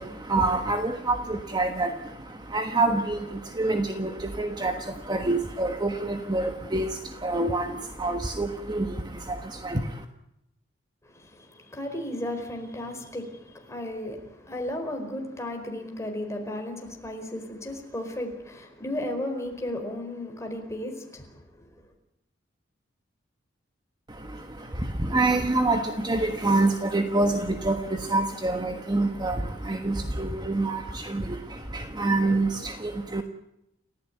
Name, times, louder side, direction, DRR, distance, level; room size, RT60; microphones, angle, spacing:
voice 1, 0.0-10.0 24.1-33.2, right 2 dB, 20° right, 1.4 m, -27 dB
voice 2, 11.0-21.7, left 1 dB, 15° left, 4.6 m, -35 dB
29.5 x 15.0 x 9.2 m
head